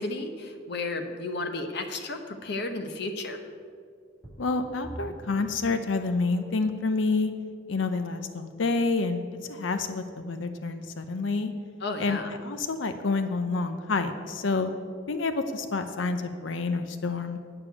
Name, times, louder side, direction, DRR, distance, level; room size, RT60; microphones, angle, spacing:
voice 1, 0.0-3.4 11.8-12.3, left 2 dB, 60° left, 6 dB, 1.1 m, -33 dB
sound 1, 4.2-6.7 7.3-7.4 8.0-8.1, equal, 10° left, 2.3 m, -45 dB
voice 2, 4.4-7.3 7.7-9.2 9.5-11.5 12.0-14.7 15.1-17.4, left 3 dB, 85° left, 9 dB, 0.7 m, -28 dB
8.8 x 6.9 x 8.4 m, 2.1 s
head